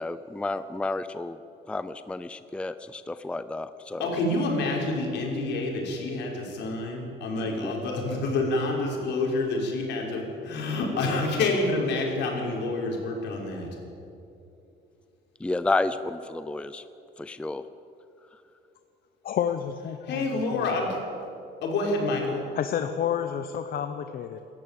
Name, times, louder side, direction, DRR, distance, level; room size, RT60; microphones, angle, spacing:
voice 1, 0.0-1.4 1.7-4.2 7.5-7.7 15.4-16.8 17.2-17.6 18.3-18.4, left 2 dB, 5° left, 12 dB, 0.5 m, -31 dB
voice 2, 4.0-13.7 20.1-20.9 21.6-22.5, left 2 dB, 75° left, -1 dB, 5.7 m, -28 dB
voice 3, 19.2-20.9 22.5-24.4, left 9 dB, 50° left, 8 dB, 1.0 m, -30 dB
28.0 x 13.5 x 8.6 m, 2.7 s
cardioid pair, 150°, 18 cm